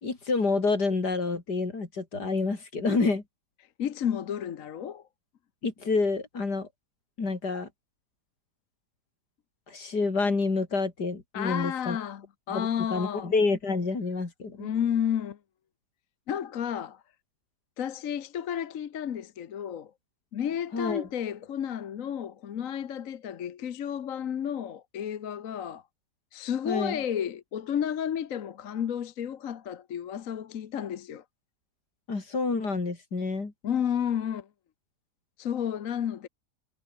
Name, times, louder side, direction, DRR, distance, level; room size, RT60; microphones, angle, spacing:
voice 1, 0.0-3.2 5.6-6.7 7.2-7.7 9.7-12.0 12.5-14.7 20.7-21.1 26.7-27.0 32.1-33.5, left 3 dB, 80° left, 4.3 m, -28 dB
voice 2, 3.8-5.0 11.3-13.3 14.5-15.4 16.3-17.0 17.8-19.9 20.3-25.8 26.3-31.2 33.6-34.5 35.4-36.3, left 9 dB, 60° left, 1.3 m, -32 dB
omnidirectional pair, 1.7 m